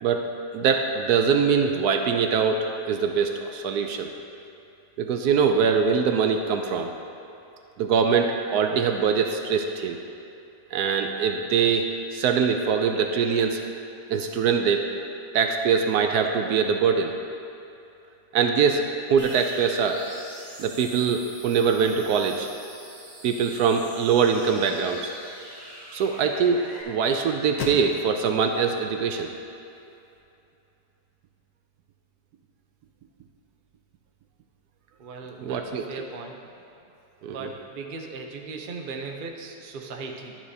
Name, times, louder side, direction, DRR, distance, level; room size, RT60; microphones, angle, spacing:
voice 1, 0.0-4.1 5.0-6.9 7.8-10.0 10.7-13.6 14.1-14.8 15.3-17.1 18.3-18.8 19.1-20.0 20.6-22.5 23.2-25.1 25.9-29.3 35.4-36.0 37.2-37.5, right 6 dB, 75° right, 4 dB, 1.0 m, -23 dB
sound 1, 19.2-26.8, right 1 dB, 15° right, 1.7 m, -44 dB
sound 2, 24.0-30.2, left 4 dB, 65° left, 1.3 m, -43 dB
voice 2, 35.0-36.4 37.3-40.4, right 4 dB, 50° right, 2 dB, 0.6 m, -38 dB
12.0 x 10.0 x 2.8 m, 2.8 s
omnidirectional pair, 1.9 m